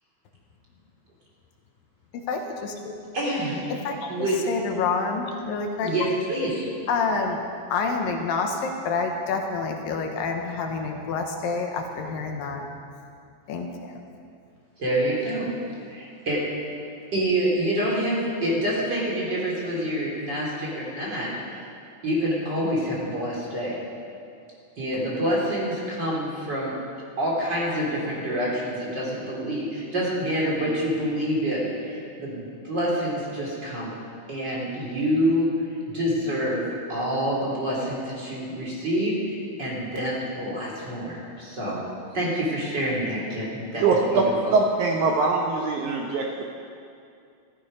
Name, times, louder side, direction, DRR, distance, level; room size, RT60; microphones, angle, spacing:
voice 1, 2.1-2.9 3.8-4.1 4.5-5.9 6.9-7.4 7.7-12.6 13.5-14.0, left 4 dB, 75° left, 3 dB, 2.7 m, -28 dB
voice 2, 3.1-3.7 4.1-4.4 5.8-6.7 14.8-15.5 15.9-16.4 17.1-21.6 22.0-23.8 24.8-26.7 27.2-33.9 34.3-35.5 35.9-36.6 36.9-41.8 42.1-44.2, equal, 30° right, -5 dB, 3.5 m, -27 dB
voice 3, 43.8-44.2 44.5-46.4, right 4 dB, 70° right, 0 dB, 2.0 m, -22 dB
14.5 x 14.0 x 5.3 m, 2.4 s
omnidirectional pair, 4.3 m